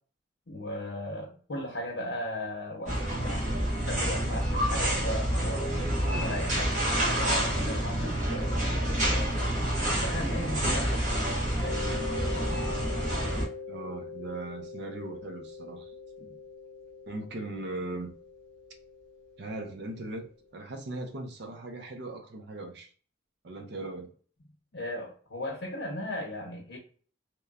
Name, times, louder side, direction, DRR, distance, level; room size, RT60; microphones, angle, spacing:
voice 1, 0.5-5.9 6.2-9.3 10.0-12.1 16.2-16.4 24.7-26.8, left 1 dB, 65° left, 0.8 m, -37 dB
sound 1, 2.9-13.5, right 1 dB, 40° right, 1.0 m, -28 dB
Mallet percussion, 11.6-20.2, left 4 dB, ahead, 1.2 m, -42 dB
voice 2, 13.7-16.0 17.1-18.1 19.4-22.9 23.4-24.1, right 2 dB, 60° right, 0.5 m, -39 dB
3.0 x 2.1 x 2.3 m
head